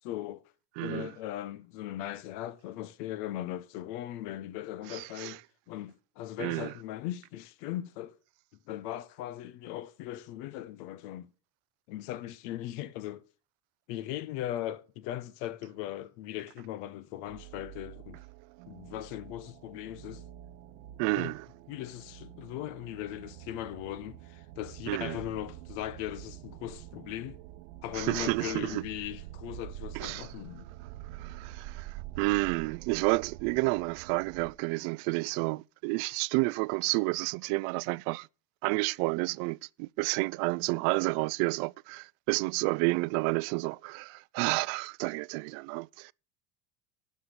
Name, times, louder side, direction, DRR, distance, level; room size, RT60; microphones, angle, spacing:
voice 1, 0.0-0.4 0.8-5.4 5.7-8.1 8.7-11.3 11.9-13.2 13.9-18.2 18.7-20.2 21.2-21.3 21.7-27.4 27.8-30.7, left 13 dB, 80° left, 1.3 m, -39 dB
voice 2, 0.8-1.1 4.9-5.4 6.4-6.7 21.0-21.5 24.9-25.2 27.9-28.8 29.9-30.3 31.1-38.3 38.6-46.1, right 26 dB, 70° right, 0.6 m, -30 dB
sound 1, 17.1-34.5, right 14 dB, 85° right, 1.2 m, -47 dB
12.5 x 5.8 x 6.6 m
supercardioid pair, 115°, 48 cm